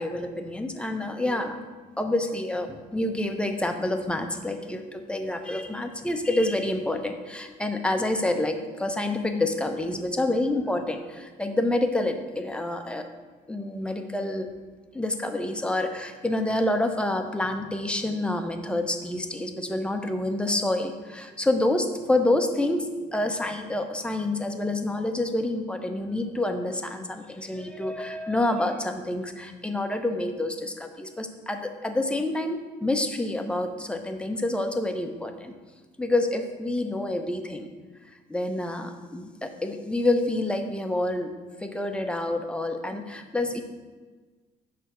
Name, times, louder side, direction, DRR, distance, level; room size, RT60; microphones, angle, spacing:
voice 1, 0.0-1.6 2.0-13.1 13.5-14.5 14.9-35.5 36.0-37.7 38.3-41.3 41.6-43.6, left 1 dB, 5° left, 5 dB, 0.7 m, -28 dB
9.2 x 3.4 x 6.1 m, 1.3 s
cardioid pair, 110°, 17 cm